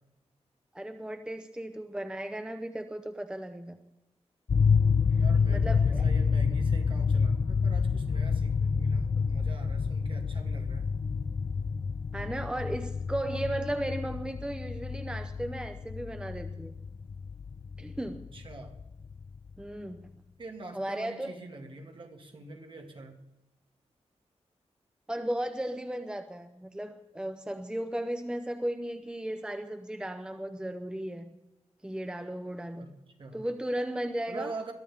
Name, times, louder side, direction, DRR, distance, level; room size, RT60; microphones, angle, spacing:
voice 1, 0.7-3.8 5.5-6.1 12.1-16.8 17.8-18.3 19.6-20.2 20.7-21.4 25.1-31.3 31.8-32.9 33.3-34.6, right 1 dB, 5° right, 8 dB, 0.7 m, -35 dB
sound 1, 4.5-19.4, left 5 dB, 40° left, 0.4 m, -28 dB
voice 2, 5.2-10.9 18.0-18.7 20.4-23.2 32.8-32.9 33.2-33.4 34.3-34.7, right 2 dB, 45° right, 3 dB, 2.2 m, -44 dB
22.0 x 13.5 x 3.6 m, 0.96 s
wide cardioid pair, 120°, 12 cm